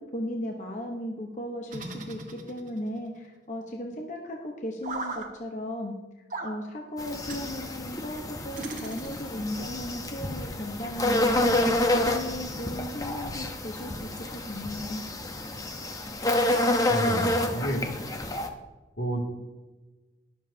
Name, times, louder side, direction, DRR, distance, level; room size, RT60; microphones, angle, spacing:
voice 1, 0.0-15.0, left 1 dB, 45° left, 1 dB, 1.0 m, -36 dB
sound 1, 1.7-2.9 4.8-5.3 6.3-6.6 7.3-7.5 8.6-9.4, right 3 dB, 45° right, 1.5 m, -37 dB
sound 2, 7.0-18.5, left 1 dB, 20° left, 0.9 m, -28 dB
voice 2, 16.9-17.8 19.0-19.2, right 1 dB, 85° left, 0 dB, 2.6 m, -30 dB
21.5 x 7.3 x 2.8 m, 1.2 s
head